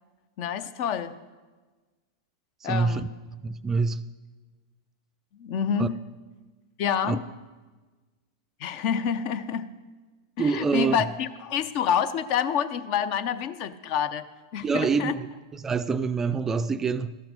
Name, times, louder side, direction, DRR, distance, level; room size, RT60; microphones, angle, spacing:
voice 1, 0.4-1.1 2.6-3.1 5.4-6.0 6.8-7.2 8.6-9.7 10.4-14.2 14.5-15.1, left 8 dB, 50° left, 0.5 m, -27 dB
voice 2, 2.6-4.0 5.8-5.9 7.0-7.2 10.4-11.1 14.6-17.2, right 5 dB, 20° right, 0.3 m, -26 dB
13.0 x 5.9 x 5.1 m
hypercardioid pair, 100°, 2 cm